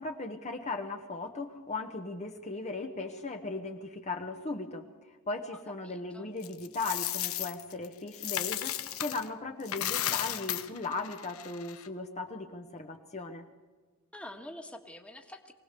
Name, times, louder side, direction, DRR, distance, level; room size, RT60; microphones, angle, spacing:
voice 1, 0.0-13.5, left 3 dB, 35° left, 4 dB, 1.1 m, -37 dB
voice 2, 5.5-6.3 14.1-15.5, left 1 dB, 5° left, 4 dB, 1.6 m, -47 dB
Coin (dropping), 6.4-9.3 9.6-11.9, left 12 dB, 85° left, 1.1 m, -34 dB
24.0 x 18.0 x 6.8 m, 1.4 s
head